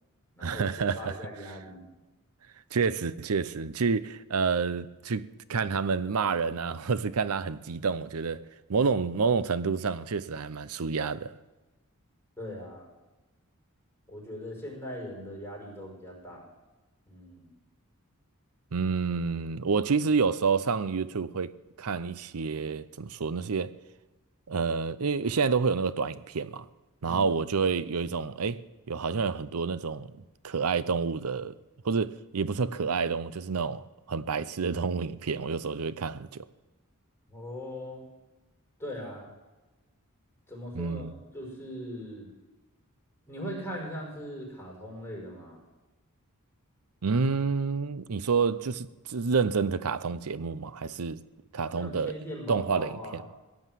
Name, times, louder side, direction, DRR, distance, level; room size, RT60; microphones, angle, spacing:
voice 1, 0.4-1.1 2.7-8.4 8.7-11.3 18.7-21.5 21.8-23.7 24.5-26.7 27.0-28.6 28.9-30.1 30.4-31.5 31.8-36.4 40.7-41.1 47.0-51.2 51.5-52.1 52.5-53.2, right 5 dB, 80° right, 0.6 m, -28 dB
voice 2, 0.9-1.9 12.4-12.9 14.1-16.5 17.1-17.5 27.0-27.3 37.3-38.0 38.8-39.3 40.5-42.3 43.3-45.6 51.7-53.3, equal, 10° left, 5.4 m, -40 dB
16.5 x 10.5 x 7.6 m
head